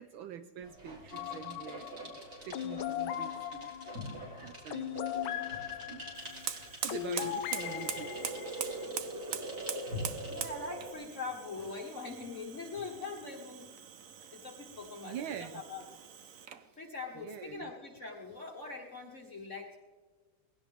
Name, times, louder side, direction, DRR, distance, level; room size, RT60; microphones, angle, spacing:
voice 1, 0.0-3.7 4.4-6.0 6.8-8.3 15.0-15.6 17.2-17.7, right 8 dB, 75° right, 10 dB, 1.4 m, -45 dB
sound 1, 0.6-10.9, right 1 dB, 35° right, 4.1 m, -43 dB
sound 2, 1.1-8.9, left 11 dB, 80° left, 1.5 m, -39 dB
Fire, 6.1-16.7, right 8 dB, 55° right, 1.0 m, -43 dB
voice 2, 10.3-13.7 14.3-15.9 16.7-19.8, left 3 dB, 40° left, 0 dB, 1.7 m, -42 dB
20.5 x 16.5 x 3.5 m, 1.4 s
omnidirectional pair, 2.3 m